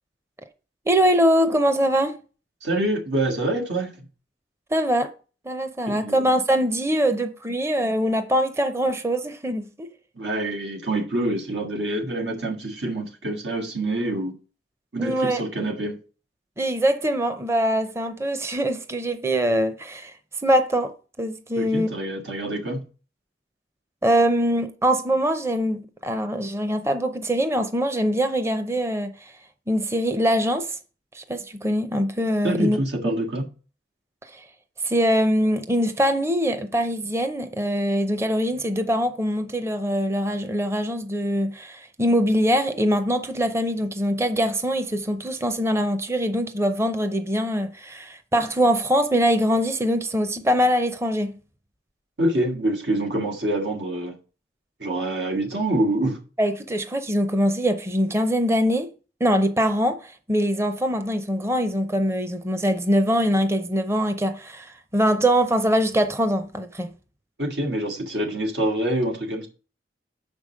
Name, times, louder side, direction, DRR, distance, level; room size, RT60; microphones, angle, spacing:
voice 1, 0.9-2.2 4.7-5.1 5.4-9.9 15.0-15.4 16.6-20.1 20.4-21.9 24.0-29.3 29.7-30.8 31.1-32.8 33.0-33.1 34.2-34.5 34.8-51.3 56.4-58.9 59.2-66.9, equal, 15° right, 0.6 m, -23 dB
voice 2, 2.6-3.9 5.9-6.2 10.2-14.3 14.9-16.0 21.6-22.8 32.4-33.5 52.2-54.2 54.8-56.2 67.4-69.5, right 1 dB, 90° right, 1.8 m, -26 dB
6.8 x 5.2 x 6.3 m
head